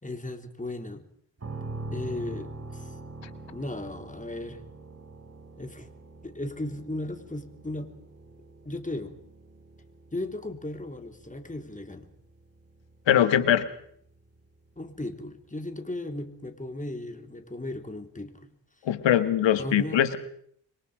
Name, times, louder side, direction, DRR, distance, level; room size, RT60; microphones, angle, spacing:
voice 1, 0.0-1.1 1.9-3.0 3.5-4.6 5.6-5.9 6.2-7.9 8.6-9.2 10.1-12.1 14.8-18.5 19.6-20.1, left 1 dB, 15° left, 7 dB, 3.5 m, -36 dB
sound 1, 1.4-15.1, right 2 dB, 35° right, 4.3 m, -44 dB
voice 2, 13.1-13.7 18.9-20.2, left 10 dB, 90° left, 11 dB, 1.9 m, -22 dB
27.0 x 22.5 x 5.1 m, 0.65 s
cardioid pair, 60°, 43 cm